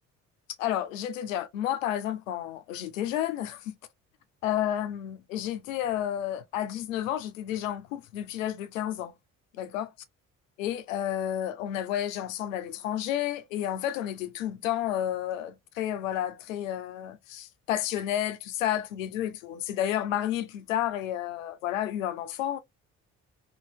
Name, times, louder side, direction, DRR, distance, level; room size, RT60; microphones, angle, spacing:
voice 1, 0.6-3.8 4.4-9.1 9.6-9.9 10.6-22.6, left 11 dB, 85° left, 0.5 m, -31 dB
2.8 x 2.7 x 2.7 m
hypercardioid pair, 55°, 39 cm